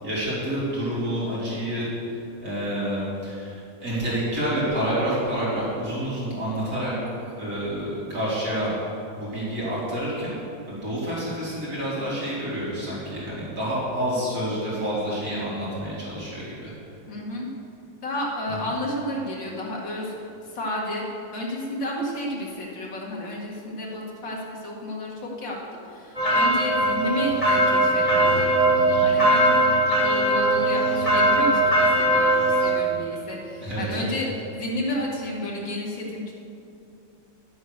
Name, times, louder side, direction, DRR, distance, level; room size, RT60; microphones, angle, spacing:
voice 1, 0.0-1.9 2.4-6.9 7.3-8.8 9.1-10.4 10.7-16.7 18.5-18.6 32.9-33.2 33.6-34.1, right 1 dB, 45° right, -9 dB, 4.0 m, -28 dB
voice 2, 17.1-17.5 18.0-21.0 21.3-25.6 25.8-36.3, left 1 dB, 70° left, -3 dB, 2.6 m, -31 dB
sound 1, 26.1-32.7, right 1 dB, 20° left, 1.5 m, -20 dB
11.0 x 7.9 x 6.6 m, 2.7 s
omnidirectional pair, 2.1 m